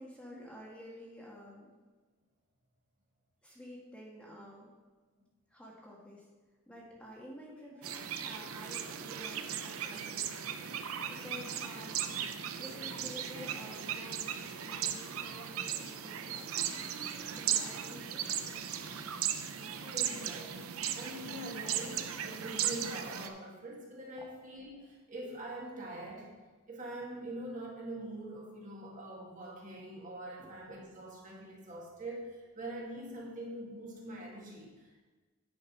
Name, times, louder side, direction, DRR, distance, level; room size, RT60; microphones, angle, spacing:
voice 1, 0.0-1.7 3.4-4.7 5.5-6.2 6.7-10.6 11.1-12.1 12.6-14.3 14.6-16.8 17.3-18.6 30.4-30.5, equal, 5° left, -4 dB, 1.4 m, -50 dB
sound 1, 7.8-23.3, right 9 dB, 90° right, 0.6 m, -37 dB
voice 2, 19.5-26.3 26.7-35.0, right 1 dB, 35° right, -3 dB, 1.8 m, -44 dB
9.7 x 4.8 x 5.5 m, 1.3 s
head